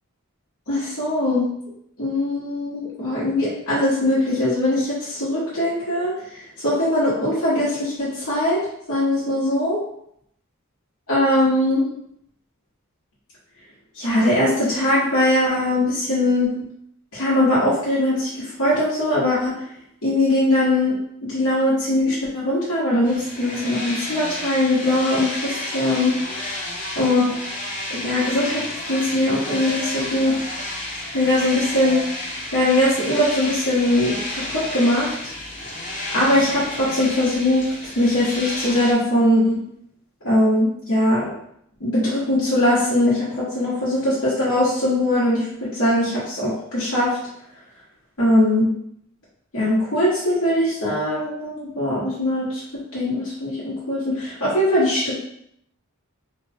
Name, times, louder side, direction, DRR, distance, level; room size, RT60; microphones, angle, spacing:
voice 1, 0.7-1.4 2.0-8.6 8.9-9.8 11.1-11.9 14.0-16.6 17.1-19.5 20.0-21.0 21.3-26.3 27.0-27.2 27.9-30.3 31.1-32.1 32.5-35.1 36.1-39.6 40.2-41.3 41.8-47.2 48.2-48.7 49.5-52.6 52.9-55.1, left 1 dB, 85° left, -10 dB, 1.4 m, -21 dB
sound 1, 23.0-38.9, left 1 dB, 40° left, 0.8 m, -31 dB
3.2 x 2.3 x 4.3 m, 0.72 s
head